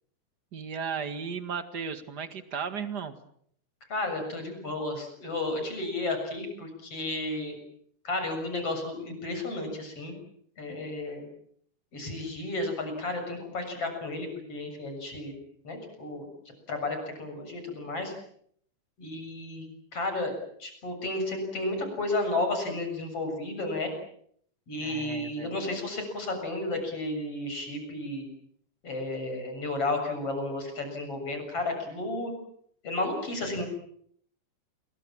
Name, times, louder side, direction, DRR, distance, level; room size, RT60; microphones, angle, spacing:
voice 1, 0.5-3.1 24.8-25.5, right 6 dB, 40° right, 9 dB, 1.7 m, -35 dB
voice 2, 3.9-7.6 8.0-10.1 10.6-11.2 11.9-15.3 15.6-16.2 16.7-18.1 19.0-19.7 19.9-23.9 24.7-28.2 28.8-32.3 32.8-33.7, left 2 dB, 40° left, 6 dB, 8.1 m, -32 dB
29.5 x 23.0 x 7.5 m, 0.65 s
omnidirectional pair, 4.3 m